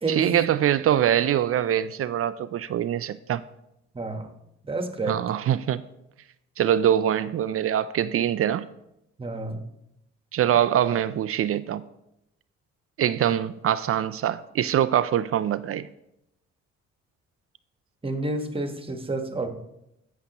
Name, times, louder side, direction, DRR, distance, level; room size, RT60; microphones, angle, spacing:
voice 1, 0.1-3.4 5.1-5.8 6.6-8.7 10.3-11.8 13.0-15.9, right 10 dB, 50° right, 0.4 m, -23 dB
voice 2, 3.9-4.3 4.7-5.2 9.2-9.7 18.0-19.5, right 2 dB, 20° right, 1.2 m, -29 dB
16.0 x 5.7 x 2.9 m
cardioid pair, 90°, 30 cm